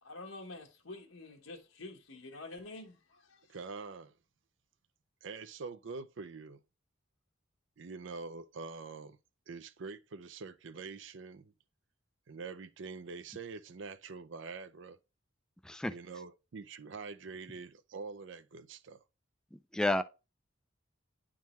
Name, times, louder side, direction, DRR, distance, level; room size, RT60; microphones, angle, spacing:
voice 1, 0.0-3.6, left 2 dB, 85° left, 1.3 m, -48 dB
voice 2, 3.5-4.1 5.2-6.6 7.8-9.2 9.5-11.5 12.3-15.0 15.8-19.0, right 4 dB, 65° right, 0.5 m, -45 dB
voice 3, 15.6-15.9 19.7-20.0, left 1 dB, 5° left, 0.3 m, -30 dB
10.5 x 3.7 x 3.0 m
head